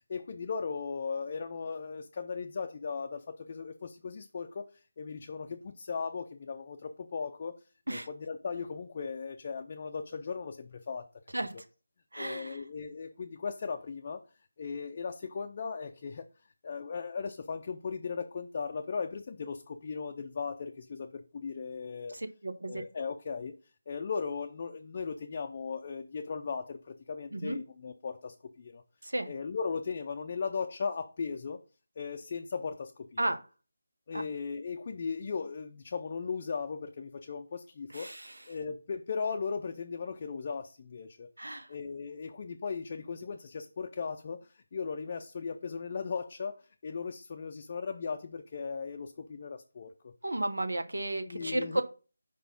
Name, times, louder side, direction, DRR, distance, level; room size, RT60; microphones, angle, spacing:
voice 1, 0.1-4.7 5.0-7.6 7.9-11.1 12.2-14.2 14.6-16.3 16.6-22.2 22.7-23.5 23.9-28.8 29.3-31.6 32.0-33.2 34.1-38.1 38.5-41.3 41.7-50.1 51.2-51.8, left 5 dB, 35° left, 0.5 m, -37 dB
voice 2, 12.1-12.6 22.1-22.8 27.3-27.6 29.0-29.3 33.2-33.4 34.1-34.2 37.9-38.4 41.4-41.7 50.2-51.8, right 1 dB, 80° right, 0.9 m, -33 dB
5.1 x 4.0 x 5.2 m
figure-of-eight pair, 160°, 0 cm